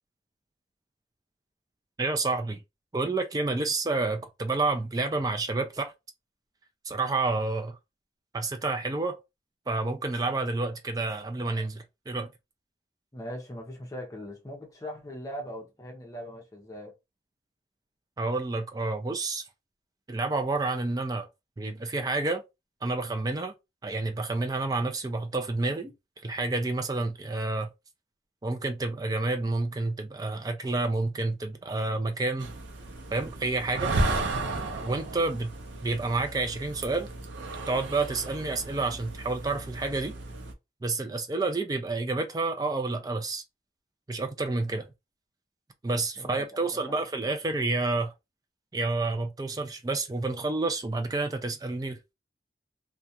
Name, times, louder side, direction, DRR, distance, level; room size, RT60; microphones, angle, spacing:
voice 1, 2.0-2.6 2.9-5.9 6.9-7.8 8.3-9.2 9.7-12.3 18.2-19.5 20.1-21.3 21.6-22.4 22.8-23.5 23.8-25.9 26.2-27.7 28.4-32.5 33.1-33.9 34.8-35.5 35.8-37.1 37.7-40.1 40.8-43.4 44.1-44.9 45.8-48.1 48.7-52.1, right 3 dB, 20° right, 0.3 m, -29 dB
voice 2, 13.1-16.9 46.2-47.0, equal, 20° left, 0.7 m, -40 dB
sound 1, 32.4-40.5, right 2 dB, 85° right, 0.6 m, -34 dB
2.3 x 2.2 x 2.7 m
head